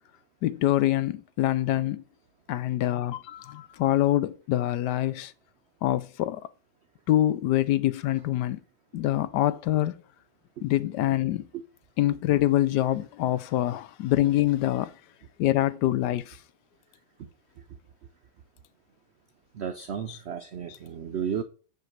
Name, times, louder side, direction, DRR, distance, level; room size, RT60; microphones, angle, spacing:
voice 1, 0.4-2.0 2.5-5.3 5.8-6.5 7.1-8.6 8.9-10.0 10.6-11.5 12.0-14.9 15.4-16.4 20.1-20.2 20.7-20.8, left 14 dB, 80° left, 1.2 m, -25 dB
voice 2, 19.5-21.4, right 8 dB, 75° right, 0.6 m, -33 dB
8.0 x 4.6 x 7.3 m
omnidirectional pair, 1.8 m